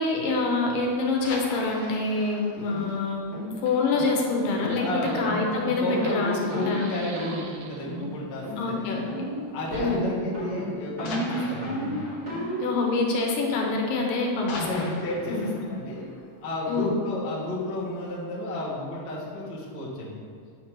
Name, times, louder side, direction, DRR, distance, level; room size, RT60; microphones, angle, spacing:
voice 1, 0.0-3.2 3.6-4.9 5.1-6.9 8.6-9.0 9.8-10.1 12.6-14.9 15.3-15.5 16.7-17.0, left 3 dB, 85° left, 0 dB, 2.6 m, -26 dB
sound 1, 1.1-4.5 4.9-5.0 5.4-5.6 5.9-6.0 6.8-7.2 8.5-8.7 9.6-9.7 11.0-13.8 14.1-17.2 17.7-17.8, left 2 dB, 70° left, 1.9 m, -41 dB
sound 2, 2.7-2.9 3.3-3.5 4.0-4.2 4.6-4.8 5.2-5.5 5.9-6.1 6.5-6.8 7.1-7.4 7.8-8.1 8.4-8.8 9.1-9.4 9.7-10.1 10.3-12.7, equal, 40° right, 0.6 m, -33 dB
Fire, 3.2-3.3 3.5-8.0 9.7-9.9, right 4 dB, 80° right, 2.2 m, -44 dB
voice 2, 4.8-5.3 5.6-9.1 9.5-12.0 14.4-16.0 16.4-20.2, left 1 dB, 50° left, -6 dB, 1.5 m, -32 dB
8.4 x 2.9 x 5.9 m, 2.2 s
omnidirectional pair, 3.9 m